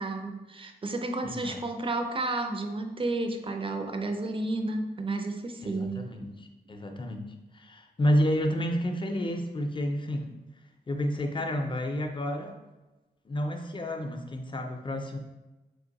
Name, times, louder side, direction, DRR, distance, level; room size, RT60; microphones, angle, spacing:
voice 1, 0.0-6.1, right 2 dB, 30° right, 6 dB, 0.4 m, -32 dB
voice 2, 1.2-1.6 5.6-10.4 10.9-12.6 13.3-15.2, equal, 30° left, 4 dB, 0.5 m, -30 dB
3.5 x 3.1 x 4.0 m, 1.1 s
wide cardioid pair, 130°, 17 cm